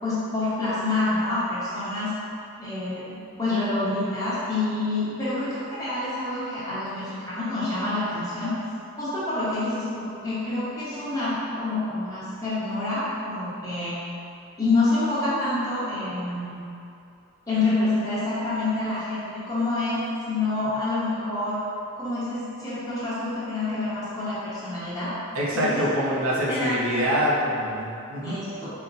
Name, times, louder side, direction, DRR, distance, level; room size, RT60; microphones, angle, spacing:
voice 1, 0.0-2.1 2.6-8.5 9.0-14.0 14.6-16.6 17.5-21.6 22.0-25.1 25.5-26.1 26.5-27.0 28.2-28.7, left 2 dB, 15° left, -11 dB, 0.9 m, -27 dB
voice 2, 25.3-28.4, equal, 70° right, -6 dB, 0.7 m, -25 dB
4.0 x 2.1 x 4.0 m, 2.6 s
head